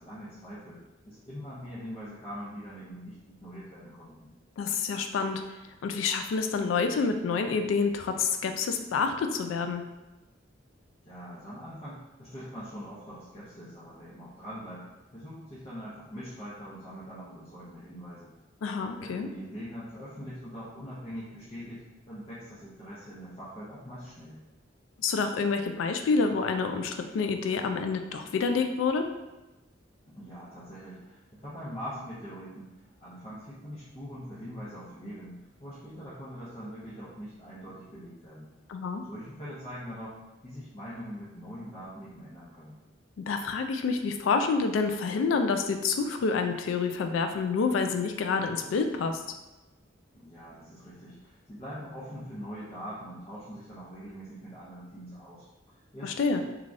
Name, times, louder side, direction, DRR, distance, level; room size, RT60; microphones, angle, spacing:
voice 1, 0.0-4.3 11.0-14.9 15.1-18.3 19.0-24.4 30.0-38.5 39.1-42.8 50.1-56.4, equal, 30° left, -11 dB, 0.7 m, -43 dB
voice 2, 4.6-5.4 5.8-9.8 18.6-19.3 25.0-29.1 38.7-39.0 43.3-49.2 56.0-56.4, left 4 dB, 90° left, 7 dB, 0.3 m, -28 dB
3.2 x 2.3 x 2.5 m, 1.0 s
head